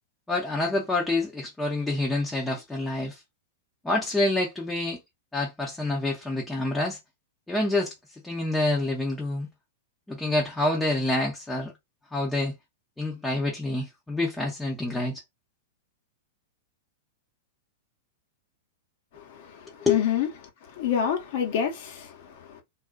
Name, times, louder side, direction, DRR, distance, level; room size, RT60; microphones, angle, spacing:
voice 1, 0.3-3.2 3.8-5.0 5.3-7.0 7.5-7.9 8.2-9.5 10.1-11.7 12.1-12.5 13.0-15.2 19.8-20.0, left 2 dB, 10° left, 0.7 m, -27 dB
voice 2, 19.1-20.3 20.7-22.6, left 8 dB, 60° left, 0.9 m, -28 dB
2.4 x 2.3 x 2.3 m
hypercardioid pair, 110°, 0 cm